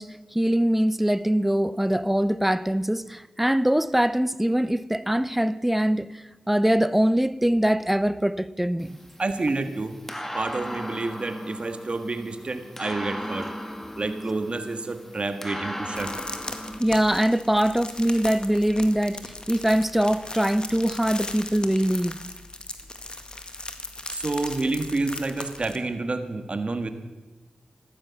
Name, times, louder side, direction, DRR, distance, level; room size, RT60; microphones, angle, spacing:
voice 1, 0.0-8.9 16.8-22.2, right 1 dB, 10° right, 0.8 m, -23 dB
sound 1, 8.8-16.8, equal, 10° left, 2.2 m, -37 dB
voice 2, 9.2-9.9 10.3-13.5 14.0-16.1 24.1-26.9, right 3 dB, 45° right, 1.7 m, -29 dB
sound 2, 16.0-25.8, left 2 dB, 35° left, 2.0 m, -38 dB
15.0 x 12.5 x 7.1 m
cardioid pair, 45°, 3 cm